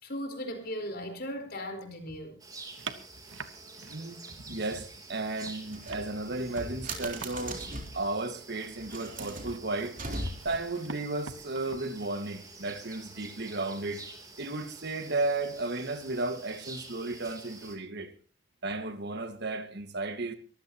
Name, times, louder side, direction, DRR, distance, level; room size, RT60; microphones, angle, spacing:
voice 1, 0.0-2.4, equal, 55° left, 4.5 m, -37 dB
sound 1, 2.4-17.8, right 3 dB, 20° right, 3.3 m, -48 dB
sound 2, 2.8-4.6 4.9-12.1, right 5 dB, 85° right, 1.3 m, -46 dB
voice 2, 3.9-7.6 7.9-10.0 10.4-14.0 14.4-18.1 18.6-20.3, right 2 dB, 60° right, 1.8 m, -34 dB
sound 3, 5.7-8.1 8.7-10.7, right 1 dB, 45° right, 3.8 m, -39 dB
23.0 x 15.5 x 2.9 m
head